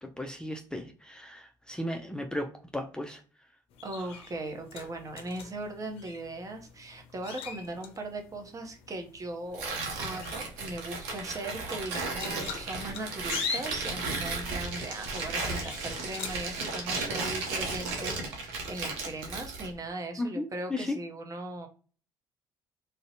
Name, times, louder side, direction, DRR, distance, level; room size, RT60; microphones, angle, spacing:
voice 1, 0.0-3.2 20.2-21.0, left 1 dB, 10° left, 3 dB, 0.4 m, -35 dB
sound 1, 3.7-16.5, left 6 dB, 65° left, 0.5 m, -43 dB
voice 2, 3.8-21.7, right 2 dB, 30° right, 4 dB, 0.7 m, -39 dB
Tearing, 9.5-19.7, right 3 dB, 80° right, 0.6 m, -35 dB
2.5 x 2.1 x 2.6 m, 0.39 s
hypercardioid pair, 60°, 11 cm